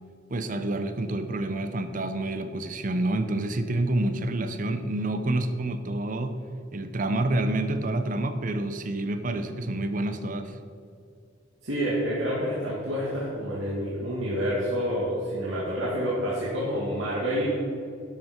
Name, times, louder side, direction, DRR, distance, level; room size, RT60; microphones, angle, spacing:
voice 1, 0.3-6.3 6.7-10.6, right 1 dB, 40° right, 9 dB, 0.7 m, -28 dB
voice 2, 11.6-17.4, equal, 80° right, -7 dB, 2.2 m, -28 dB
11.5 x 7.8 x 4.4 m, 2.5 s
head